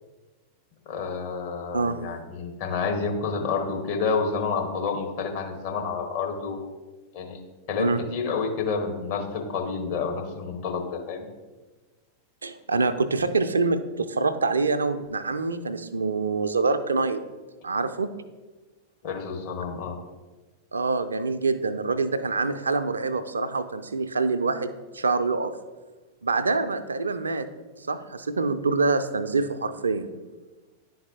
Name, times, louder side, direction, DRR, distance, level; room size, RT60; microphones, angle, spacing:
voice 1, 0.9-6.7 7.1-7.4 7.7-11.2 19.0-19.9, left 5 dB, 50° left, 2 dB, 1.1 m, -29 dB
voice 2, 12.4-17.2 17.6-18.1 20.7-25.5 26.2-27.5 27.8-30.1, right 3 dB, 75° right, 11 dB, 0.4 m, -25 dB
10.5 x 3.9 x 2.7 m, 1.2 s
figure-of-eight pair, 90°, 0 cm